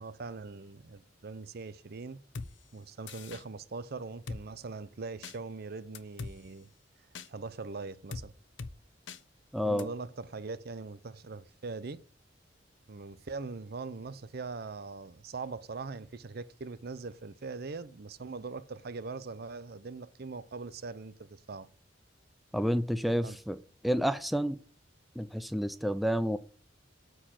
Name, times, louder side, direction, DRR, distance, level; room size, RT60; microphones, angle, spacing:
voice 1, 0.0-2.2 2.7-6.7 7.2-8.3 9.6-12.0 12.9-21.7 23.2-23.4, right 4 dB, 55° right, 0.6 m, -41 dB
Drum kit, 2.3-2.5 3.1-3.4 4.3-4.4 5.2-5.4 5.9-6.3 7.1-7.3 8.1-8.3 8.6-8.7 9.1-9.2 9.8-9.9, left 4 dB, 70° left, 0.7 m, -40 dB
voice 2, 9.5-9.9 22.5-23.6 23.8-24.6 25.2-26.4, equal, ahead, 0.4 m, -29 dB
9.0 x 4.6 x 7.4 m
head